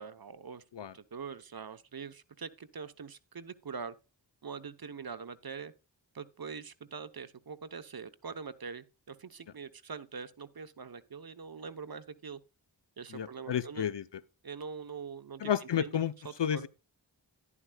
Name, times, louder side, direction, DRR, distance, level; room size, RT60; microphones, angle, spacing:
voice 1, 0.0-0.6 0.9-3.9 4.4-5.7 6.1-12.4 13.0-13.8 14.4-16.0 16.2-16.7, right 5 dB, 50° right, 0.8 m, -43 dB
voice 2, 13.1-14.0 15.4-16.1 16.4-16.7, left 9 dB, 65° left, 0.7 m, -31 dB
11.0 x 11.0 x 2.2 m
wide cardioid pair, 40°, 45 cm